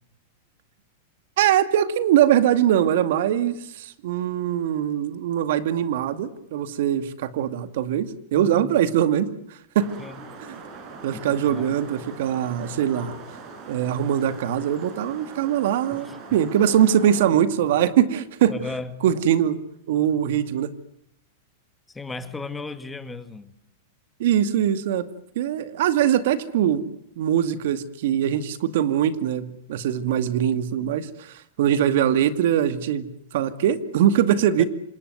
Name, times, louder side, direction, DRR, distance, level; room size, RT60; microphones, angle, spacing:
voice 1, 1.4-9.9 10.5-10.6 11.0-13.1 13.7-18.5 19.0-19.6 19.9-20.7 24.2-25.1 25.4-33.1 33.3-34.6, right 10 dB, 70° right, 12 dB, 2.2 m, -22 dB
voice 2, 8.3-8.7 10.0-10.2 11.1-11.8 15.9-16.4 18.5-19.0 21.9-23.5 34.6-34.7, left 3 dB, 10° left, 11 dB, 2.0 m, -36 dB
sound 1, 9.8-17.3, right 4 dB, 40° right, 6.6 m, -41 dB
26.5 x 19.5 x 9.5 m, 0.76 s
hypercardioid pair, 130°, 0 cm